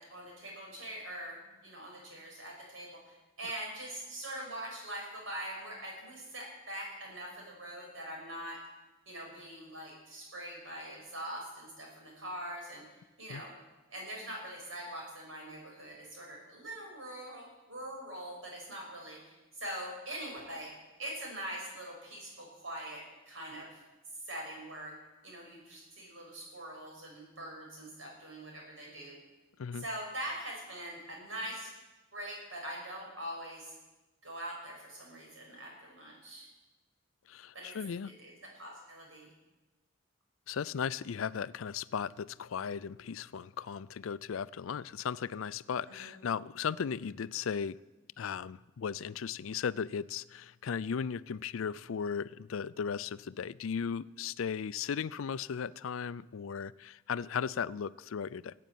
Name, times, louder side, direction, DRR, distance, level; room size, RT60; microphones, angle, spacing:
voice 1, 0.0-8.6 9.1-12.8 13.2-13.5 13.9-20.7 21.0-23.7 24.3-24.9 25.2-29.1 29.7-31.7 32.1-33.7 34.2-36.4 37.5-37.7 38.0-39.3 45.9-46.2, right 1 dB, 75° right, 6.2 m, -43 dB
voice 2, 37.3-38.1 40.5-47.8 48.2-58.5, left 7 dB, 80° left, 0.4 m, -36 dB
15.5 x 8.5 x 9.4 m
head